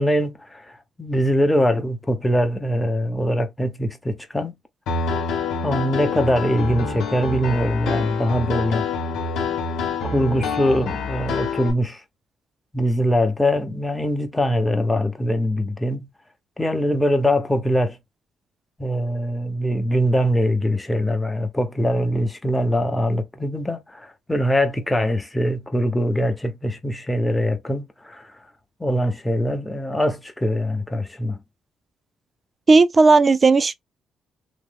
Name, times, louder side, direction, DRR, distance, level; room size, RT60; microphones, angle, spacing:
voice 1, 0.0-4.5 5.6-8.8 10.0-12.0 12.7-16.1 16.6-18.0 18.8-28.3 28.8-31.4, equal, 10° left, 0.9 m, -22 dB
Piano, 4.9-11.7, left 4 dB, 85° left, 1.1 m, -26 dB
voice 2, 32.7-33.7, right 3 dB, 35° right, 0.4 m, -14 dB
3.1 x 2.1 x 3.5 m
cardioid pair, 90°, 0 cm